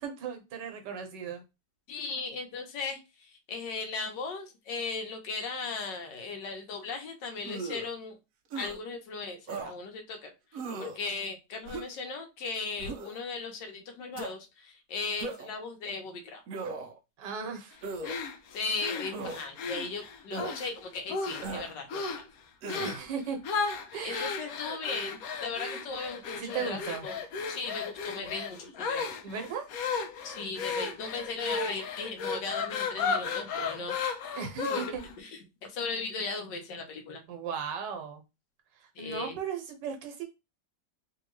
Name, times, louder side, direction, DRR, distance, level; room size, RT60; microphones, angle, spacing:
voice 1, 0.0-1.4 17.2-17.8 22.8-23.4 23.9-24.3 26.3-27.1 29.2-29.7 34.4-35.0 37.3-38.2 39.0-40.2, right 6 dB, 85° right, 1.5 m, -36 dB
voice 2, 1.9-8.2 8.5-10.3 10.8-16.4 18.5-22.2 24.0-29.1 30.2-34.0 34.7-34.8 35.2-37.2 38.9-39.4, left 4 dB, 85° left, 1.5 m, -37 dB
sound 1, 7.4-7.9 8.5-8.8 9.5-9.7 10.5-11.0 11.7-12.0 12.8-13.2 14.2-14.3 15.2-15.6 16.5-17.0 17.8-18.2 19.1-19.4 20.3-20.6 21.4-21.7 22.6-23.0, right 3 dB, 65° right, 0.9 m, -37 dB
sound 2, 18.0-20.7 21.1-21.6 21.9-22.3 22.7-23.0 23.4-35.1, left 5 dB, 65° left, 1.0 m, -34 dB
3.4 x 2.8 x 3.1 m
omnidirectional pair, 1.9 m